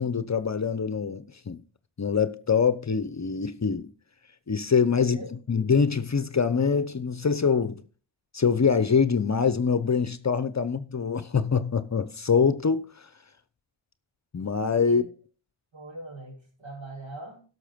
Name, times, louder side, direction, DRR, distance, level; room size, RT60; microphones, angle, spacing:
voice 1, 0.0-1.6 2.0-3.9 4.5-5.2 5.5-7.8 8.3-12.8 14.3-15.0, left 6 dB, 35° left, 0.7 m, -24 dB
voice 2, 5.0-5.3 14.8-15.0 15.7-17.4, right 2 dB, 65° right, 5.0 m, -41 dB
11.5 x 6.5 x 5.1 m
cardioid pair, 65°, 49 cm